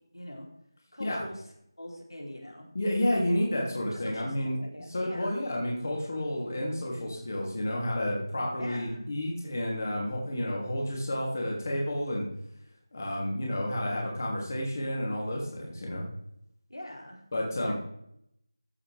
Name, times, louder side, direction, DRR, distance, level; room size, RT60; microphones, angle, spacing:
voice 1, 0.1-0.5 0.9-1.3 1.8-2.7 3.9-5.4 8.6-9.1 16.7-17.2 17.6-17.8, left 1 dB, 85° left, 0 dB, 3.5 m, -43 dB
voice 2, 2.7-4.6 4.9-12.3 12.9-16.0 17.3-17.7, left 1 dB, 40° left, -2 dB, 2.9 m, -30 dB
15.5 x 7.1 x 3.5 m, 0.75 s
figure-of-eight pair, 165°, 2 cm